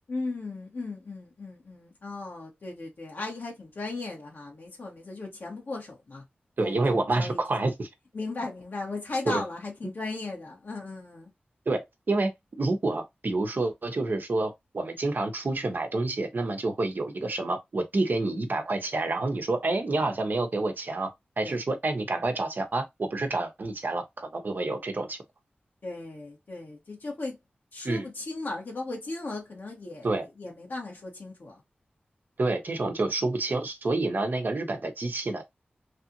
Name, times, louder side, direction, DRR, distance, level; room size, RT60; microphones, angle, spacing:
voice 1, 0.1-6.3 6.6-7.4 8.1-11.3 21.4-21.5 25.8-27.4 27.7-31.6, left 3 dB, 70° left, 1.4 m, -37 dB
voice 2, 6.6-7.9 9.3-9.4 11.7-21.1 21.4-25.2 27.8-28.0 30.0-30.3 32.4-35.5, right 2 dB, 65° right, 0.9 m, -28 dB
3.3 x 2.5 x 2.8 m
cardioid pair, 40°, 4 cm